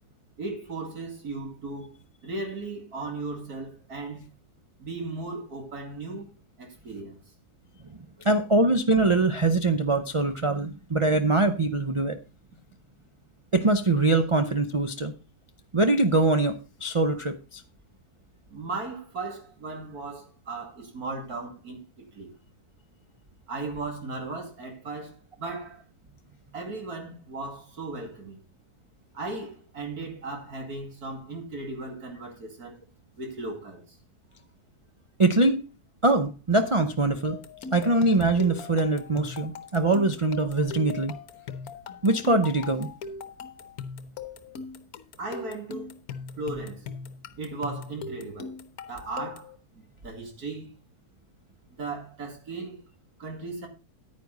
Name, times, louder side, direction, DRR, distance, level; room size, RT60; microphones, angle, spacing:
voice 1, 0.4-4.3 4.8-6.3 6.6-7.2 18.5-22.3 23.5-25.8 26.5-28.4 29.1-32.8 33.2-34.0 45.2-45.9 46.4-46.9 47.4-48.5 48.9-50.7 51.8-52.8 53.2-53.7, right 3 dB, 75° right, 2.8 m, -36 dB
voice 2, 7.9-12.2 13.5-15.1 15.7-17.6 35.2-35.6 36.0-37.4 37.7-41.1 42.0-42.9, right 2 dB, 45° right, 0.4 m, -23 dB
sound 1, 37.2-49.6, left 5 dB, 70° left, 1.3 m, -40 dB
9.5 x 9.5 x 3.9 m
omnidirectional pair, 1.6 m